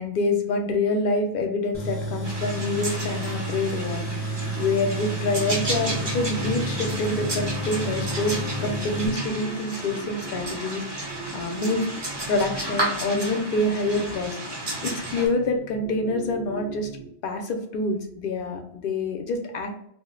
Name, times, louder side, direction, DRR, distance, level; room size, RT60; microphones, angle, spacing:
voice 1, 0.0-4.3 4.5-10.8 11.3-11.9 12.3-14.4 14.8-16.9 17.2-19.9, left 2 dB, 60° left, 4 dB, 0.7 m, -26 dB
Tools, 1.7-9.1, equal, 15° left, 0.5 m, -31 dB
sound 1, 2.2-15.3, right 1 dB, 35° right, 0.5 m, -33 dB
sound 2, 5.3-17.1, right 4 dB, 85° right, 0.9 m, -38 dB
2.4 x 2.1 x 3.7 m, 0.70 s
omnidirectional pair, 1.1 m